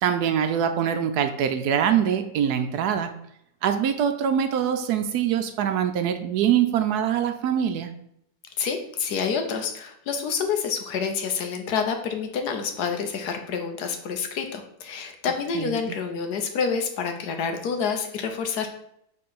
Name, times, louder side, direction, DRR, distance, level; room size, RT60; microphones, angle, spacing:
voice 1, 0.0-3.1 3.6-7.9 15.5-15.8, right 9 dB, 75° right, 8 dB, 1.0 m, -24 dB
voice 2, 8.6-18.7, left 6 dB, 70° left, 5 dB, 1.3 m, -28 dB
6.5 x 3.8 x 3.9 m, 0.75 s
omnidirectional pair, 1.8 m